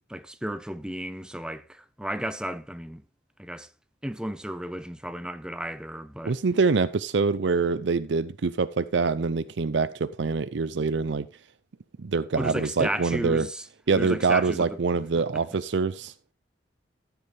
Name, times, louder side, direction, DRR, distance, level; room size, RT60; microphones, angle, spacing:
voice 1, 0.0-3.0 3.4-3.7 4.0-6.4 12.4-13.7 13.9-14.8 15.1-15.2, right 1 dB, 5° right, 0.5 m, -33 dB
voice 2, 6.2-11.3 12.0-13.5 13.9-16.1, right 4 dB, 80° right, 0.5 m, -25 dB
13.5 x 8.2 x 3.3 m
head